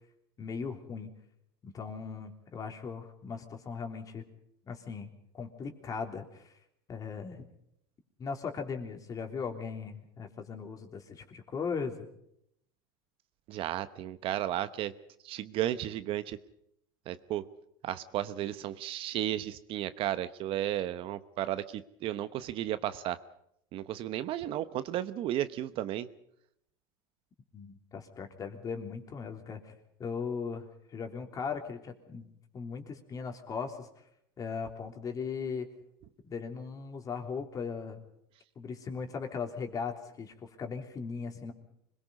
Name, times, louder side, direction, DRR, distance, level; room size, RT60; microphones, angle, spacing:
voice 1, 0.4-1.1 1.6-4.2 4.6-5.1 5.3-6.5 6.9-7.5 8.2-12.1 27.5-29.7 30.0-33.9 34.4-35.7 36.2-38.0 38.6-41.5, left 5 dB, 30° left, 4 dB, 3.5 m, -38 dB
voice 2, 13.5-14.9 15.2-16.4 17.1-17.5 17.8-23.2 23.7-26.1, right 12 dB, 45° right, 13 dB, 1.0 m, -34 dB
26.0 x 22.0 x 5.4 m, 0.75 s
supercardioid pair, 115°, 12 cm